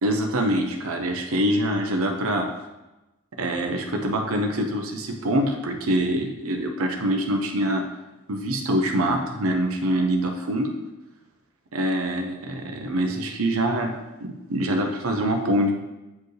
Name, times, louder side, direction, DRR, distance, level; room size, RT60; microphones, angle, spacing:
voice 1, 0.0-2.5 3.4-7.8 8.3-10.7 11.7-13.9 14.2-15.7, right 1 dB, 85° right, 3 dB, 0.8 m, -24 dB
8.2 x 4.6 x 3.2 m, 1.0 s
head